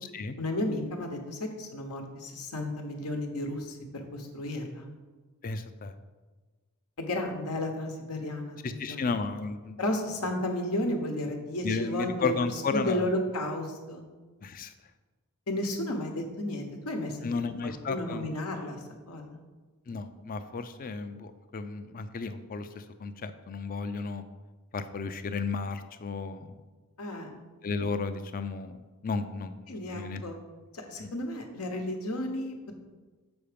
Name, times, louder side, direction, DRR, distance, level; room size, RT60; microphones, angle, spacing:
voice 1, 0.4-4.9 7.0-9.0 9.8-12.3 12.7-14.0 15.5-17.2 17.6-18.8 19.1-19.4 27.0-27.4 29.7-30.3 30.7-32.8, left 1 dB, 85° left, 3 dB, 1.1 m, -33 dB
voice 2, 5.4-5.9 8.6-9.8 11.6-13.1 14.4-14.7 17.2-18.4 19.9-24.2 24.7-26.5 27.6-29.5 29.9-30.2 31.0-31.1, left 4 dB, 40° left, 10 dB, 0.4 m, -33 dB
7.1 x 4.7 x 5.1 m, 1.3 s
head